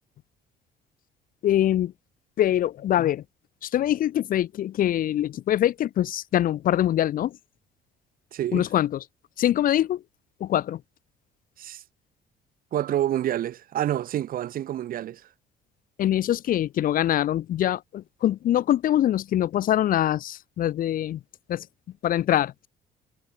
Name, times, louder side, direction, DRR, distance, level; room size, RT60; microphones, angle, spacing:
voice 1, 1.4-1.9 2.4-3.2 3.6-7.4 8.5-9.0 9.4-10.0 10.4-10.8 16.0-21.2 21.5-21.7 22.0-22.7, left 12 dB, 55° left, 0.8 m, -24 dB
voice 2, 8.3-8.6 11.6-11.8 12.7-15.2, right 12 dB, 55° right, 1.2 m, -28 dB
cardioid pair, 110°, 17 cm